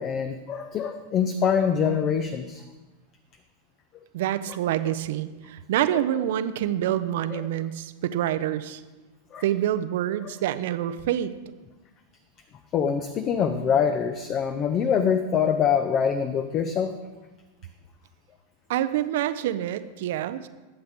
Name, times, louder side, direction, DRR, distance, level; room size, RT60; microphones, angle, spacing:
voice 1, 0.0-2.6 5.9-6.0 7.3-7.4 9.3-9.4 10.2-10.3 12.7-16.9, left 7 dB, 30° left, 9 dB, 0.7 m, -24 dB
voice 2, 4.1-8.8 9.4-11.3 18.7-20.5, right 12 dB, 55° right, 13 dB, 0.6 m, -27 dB
20.5 x 7.9 x 3.6 m, 1.2 s
figure-of-eight pair, 90°, 0 cm